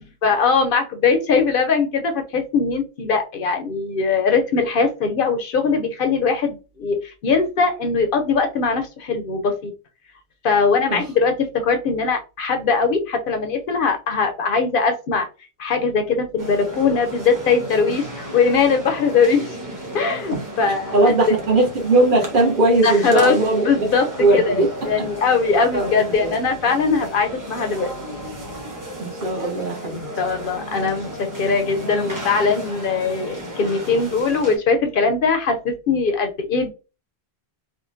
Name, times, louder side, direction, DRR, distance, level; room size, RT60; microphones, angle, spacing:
voice 1, 0.2-9.7 10.4-15.3 15.6-19.5 19.9-21.3 22.8-23.4 23.6-24.1 24.3-28.0 29.8-36.7, left 5 dB, 65° left, 0.7 m, -21 dB
sound 1, 16.4-34.6, equal, 20° right, 0.8 m, -34 dB
voice 2, 20.9-23.7 24.2-25.1 25.7-26.3 29.0-30.1, right 2 dB, 55° right, 1.1 m, -19 dB
3.7 x 2.1 x 2.5 m
omnidirectional pair, 1.1 m